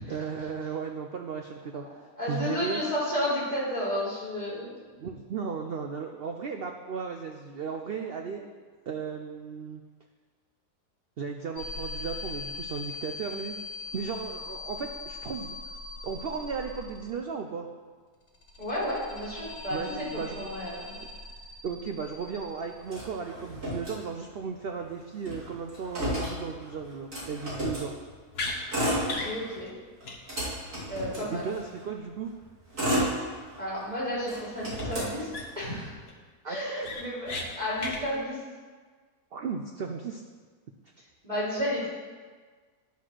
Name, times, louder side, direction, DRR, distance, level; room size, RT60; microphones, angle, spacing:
voice 1, 0.1-1.8 2.3-2.8 5.0-8.4 8.9-9.8 11.2-13.6 13.9-15.5 16.0-17.7 19.7-20.5 21.6-27.9 31.2-32.3 36.4-36.9 39.3-40.2, right 5 dB, 80° right, 4 dB, 0.5 m, -35 dB
voice 2, 2.2-4.7 18.6-20.9 29.0-29.7 30.9-31.5 33.6-35.3 35.5-36.0 36.4-38.4 41.2-41.9, equal, 25° right, -9 dB, 3.3 m, -32 dB
Data Tones, 11.5-17.4 18.2-23.2, left 3 dB, 65° left, 1.8 m, -41 dB
Motor vehicle (road), 22.9-24.5 24.8-24.9 25.1-27.9 28.5-29.6 30.0-31.8 32.4-33.8 34.2-35.8, equal, 55° right, 2.9 m, -32 dB
sound 1, 28.3-28.6 29.1-29.3 29.7-29.8 30.0-30.2 30.4-30.6 34.7-34.8 35.3-35.7 36.1-36.2 36.5-37.5 37.8-38.0, left 3 dB, 45° left, 1.1 m, -34 dB
10.5 x 4.3 x 6.1 m, 1.5 s
omnidirectional pair, 1.7 m